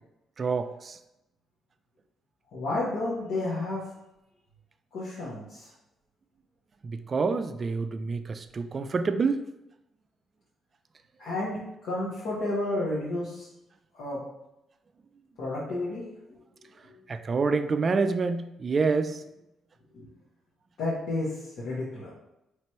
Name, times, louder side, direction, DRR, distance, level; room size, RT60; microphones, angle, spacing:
voice 1, 0.4-1.0 6.8-9.4 17.1-19.2, right 4 dB, 40° right, 10 dB, 0.3 m, -27 dB
voice 2, 2.5-3.8 4.9-5.7 11.2-13.5 13.9-14.2 15.4-16.0 19.9-20.1 20.8-22.1, left 2 dB, 75° left, -9 dB, 1.2 m, -31 dB
3.3 x 3.0 x 4.4 m, 0.90 s
cardioid pair, 90°, 0 cm